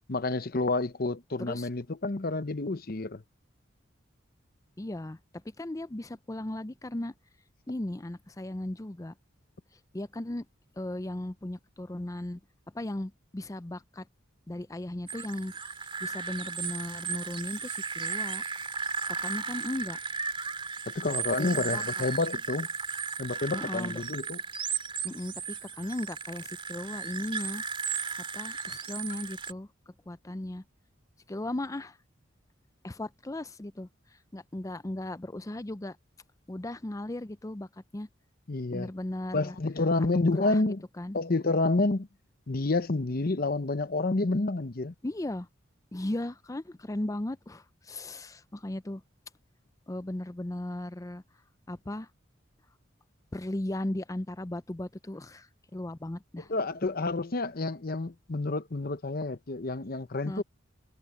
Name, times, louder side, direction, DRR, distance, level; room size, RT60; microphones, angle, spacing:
voice 1, 0.1-3.2 20.9-22.7 23.2-24.4 38.5-38.9 39.3-40.8 41.1-42.1 42.5-44.9 56.5-60.4, left 2 dB, 50° left, 0.9 m, -29 dB
voice 2, 1.4-1.7 4.8-5.2 5.6-7.1 7.7-9.1 9.9-10.5 10.8-12.4 12.7-14.1 14.5-15.5 16.0-18.4 19.1-20.0 21.4-22.0 23.5-24.0 25.0-27.6 28.3-29.7 30.1-30.6 31.3-32.0 32.8-33.9 34.3-36.0 36.5-38.1 38.7-39.6 40.0-41.2 45.0-45.5 45.9-49.0 49.9-51.2 51.7-52.1 53.3-56.5 60.3-60.4, left 1 dB, 15° left, 0.5 m, -36 dB
sound 1, 15.1-29.5, right 5 dB, 25° right, 3.1 m, -35 dB
head